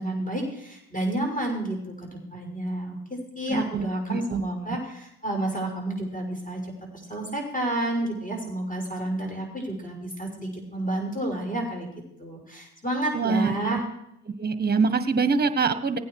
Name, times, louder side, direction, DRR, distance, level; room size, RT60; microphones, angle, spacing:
voice 1, 0.0-11.9 12.2-13.8, right 1 dB, 20° left, 0 dB, 6.1 m, -30 dB
voice 2, 3.5-4.4 13.1-13.8 14.3-16.0, right 4 dB, 25° right, 10 dB, 1.4 m, -25 dB
16.5 x 9.3 x 4.8 m, 0.79 s
hypercardioid pair, 55°, 38 cm